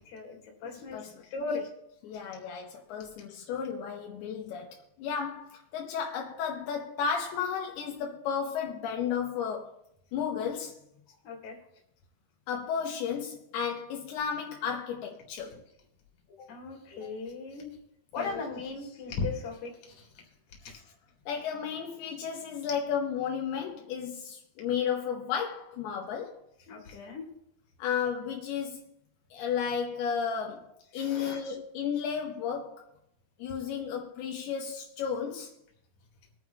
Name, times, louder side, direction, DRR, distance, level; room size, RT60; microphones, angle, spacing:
voice 1, 0.1-1.6 11.1-11.6 16.4-17.7 18.1-20.1 26.7-27.3 30.9-31.5, left 3 dB, 50° left, 3.3 m, -37 dB
voice 2, 0.7-1.2 1.5-1.6 2.0-9.7 10.1-10.8 12.5-15.6 18.2-18.4 20.6-20.8 21.3-26.4 27.8-28.8 29.3-32.8 33.4-35.5, left 7 dB, 80° left, 2.9 m, -33 dB
24.5 x 9.2 x 2.3 m
omnidirectional pair, 4.6 m